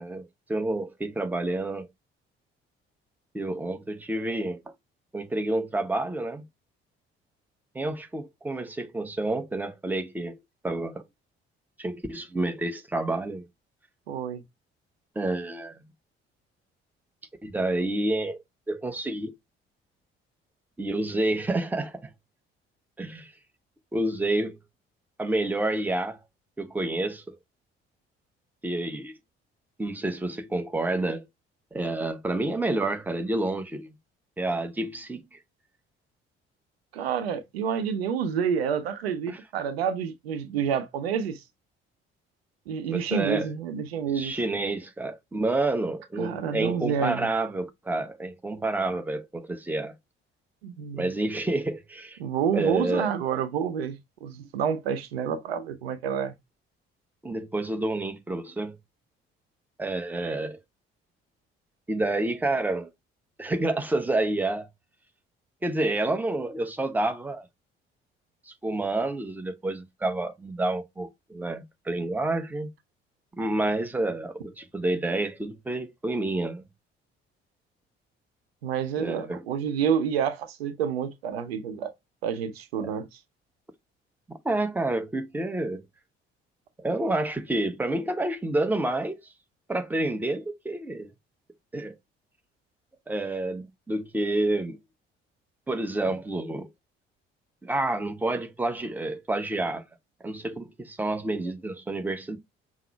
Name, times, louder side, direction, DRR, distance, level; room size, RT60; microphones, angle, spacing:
voice 1, 0.0-1.9 3.3-4.6 5.1-6.4 7.7-10.4 10.6-11.0 11.8-13.5 15.1-15.8 17.4-18.4 18.7-19.3 20.8-22.1 23.0-23.3 23.9-24.6 25.2-26.2 26.6-27.4 28.6-29.1 29.8-31.2 31.7-33.9 34.4-35.4 39.3-39.4 42.9-43.5 44.1-49.9 50.9-52.2 52.5-53.1 57.2-58.8 59.8-60.6 61.9-62.9 63.4-64.7 65.6-67.5 68.5-72.7 73.3-76.7 79.0-79.4 82.8-82.9 84.4-85.8 86.8-89.3 89.7-91.1 91.7-91.9 93.1-94.8 95.7-96.7 97.6-99.8 100.2-102.4, right 2 dB, 5° right, 0.7 m, -29 dB
voice 2, 14.1-14.4 36.9-41.4 42.7-44.3 46.2-47.3 50.6-51.1 52.2-56.3 78.6-81.9 82.2-83.1, right 7 dB, 75° right, 0.6 m, -28 dB
5.8 x 2.0 x 4.4 m
figure-of-eight pair, 45°, 31 cm